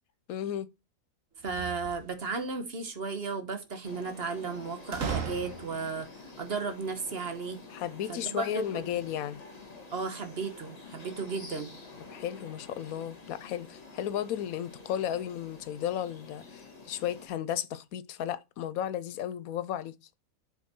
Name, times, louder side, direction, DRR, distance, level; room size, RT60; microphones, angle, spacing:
voice 1, 0.3-0.7 7.7-9.4 12.1-20.0, left 10 dB, 70° left, 1.1 m, -34 dB
voice 2, 1.4-6.1 6.4-7.6 8.1-8.9 9.9-11.7, right 4 dB, 45° right, 1.3 m, -34 dB
sound 1, 1.4-2.5 4.9-6.0, right 6 dB, 60° right, 1.6 m, -36 dB
sound 2, 3.8-17.3, left 3 dB, 25° left, 1.5 m, -49 dB
7.2 x 5.6 x 4.3 m
omnidirectional pair, 1.6 m